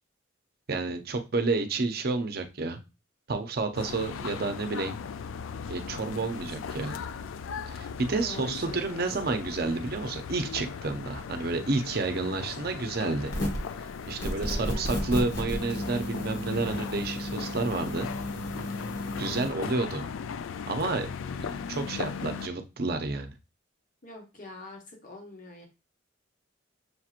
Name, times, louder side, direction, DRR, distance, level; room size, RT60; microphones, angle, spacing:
voice 1, 0.7-2.8 3.3-4.9 5.7-7.0 7.7-13.3 13.8-18.1 19.2-20.1 20.7-21.1 21.3-23.3, right 3 dB, 50° right, 7 dB, 0.6 m, -30 dB
sound 1, 3.7-22.5, left 6 dB, 90° left, 0.3 m, -38 dB
voice 2, 8.2-9.3 12.2-12.3 14.2-14.9 19.2-19.4 24.0-25.7, left 2 dB, 45° left, 1 dB, 1.3 m, -44 dB
sound 2, 13.3-13.7 14.2-19.5, equal, 70° left, 1.4 m, -33 dB
6.4 x 2.9 x 2.4 m, 0.28 s
head